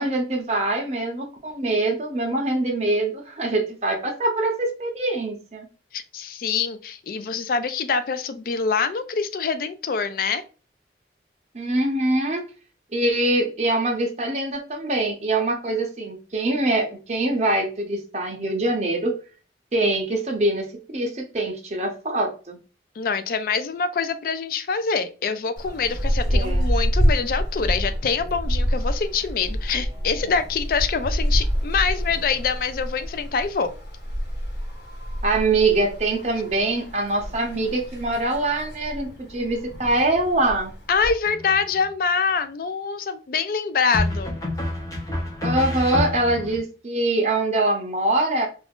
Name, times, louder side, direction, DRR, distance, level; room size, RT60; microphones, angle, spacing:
voice 1, 0.0-5.7 11.5-12.4 12.9-19.2 19.7-20.7 20.9-22.6 26.3-26.7 35.2-40.7 45.4-48.5, right 2 dB, 40° right, 1 dB, 0.6 m, -24 dB
voice 2, 5.9-10.4 23.0-33.7 40.9-44.4, left 5 dB, 50° left, 11 dB, 0.3 m, -25 dB
sound 1, 25.6-41.1, equal, 75° left, 1.5 m, -27 dB
sound 2, 41.3-41.9 43.9-46.6, left 1 dB, 20° left, 0.6 m, -28 dB
2.4 x 2.3 x 3.4 m, 0.35 s
head